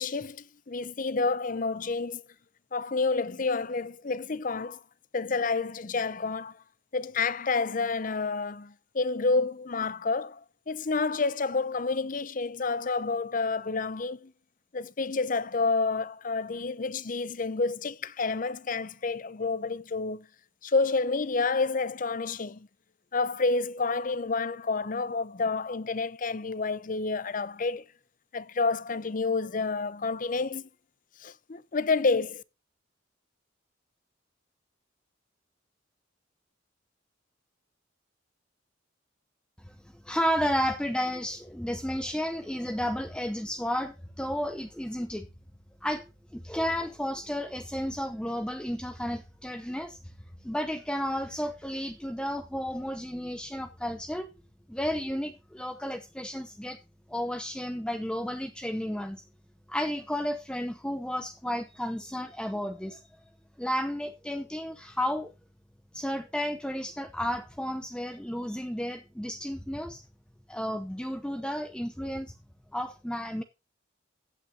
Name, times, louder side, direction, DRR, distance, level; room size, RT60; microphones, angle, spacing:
voice 1, 0.0-2.2 2.7-4.8 5.1-6.6 6.9-14.3 14.7-20.3 20.6-22.7 23.1-27.8 28.3-30.7 31.2-32.4, left 4 dB, 45° left, 0.6 m, -29 dB
voice 2, 40.0-45.3 45.8-50.0 50.4-54.3 54.7-56.8 57.1-59.2 59.7-63.0 63.6-65.3 65.9-70.0 70.5-72.3 72.7-73.4, equal, 5° left, 0.7 m, -32 dB
15.5 x 8.7 x 2.8 m
head